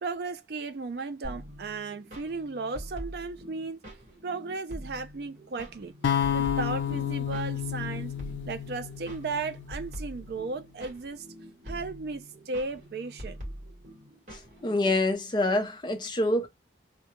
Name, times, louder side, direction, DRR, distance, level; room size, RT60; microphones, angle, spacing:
voice 1, 0.0-3.8 4.2-5.9 6.3-8.1 8.5-11.3 11.6-13.4, right 4 dB, 60° right, 0.4 m, -35 dB
sound 1, 1.2-15.1, equal, 45° right, 1.1 m, -44 dB
sound 2, 6.0-10.2, left 9 dB, 85° left, 0.4 m, -31 dB
voice 2, 14.6-16.5, left 2 dB, 25° left, 0.4 m, -26 dB
2.3 x 2.1 x 2.9 m
head